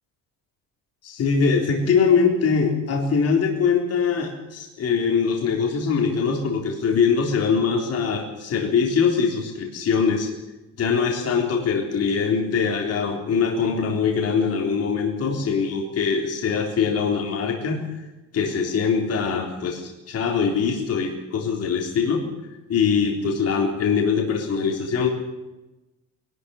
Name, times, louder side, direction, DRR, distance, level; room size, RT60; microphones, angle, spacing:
voice 1, 1.0-10.3 10.8-17.9 18.3-22.2 22.7-25.1, left 5 dB, 50° left, 1 dB, 3.8 m, -22 dB
21.5 x 12.5 x 9.8 m, 1.0 s
cardioid pair, 160°, 32 cm